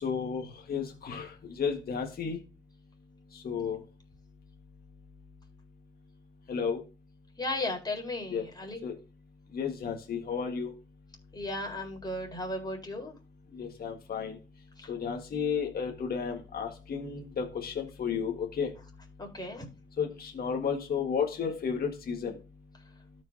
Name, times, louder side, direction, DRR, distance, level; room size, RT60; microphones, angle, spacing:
voice 1, 0.0-2.4 3.3-3.8 6.5-6.8 8.3-8.4 8.8-8.9 9.5-10.7 13.5-14.4 14.9-18.7 20.0-22.3, left 6 dB, 50° left, 2 dB, 1.7 m, -32 dB
voice 2, 7.4-8.8 11.3-13.1 19.2-19.7, left 1 dB, 20° left, 0 dB, 4.1 m, -35 dB
13.5 x 5.5 x 2.8 m, 0.33 s
cardioid pair, 90°, 20 cm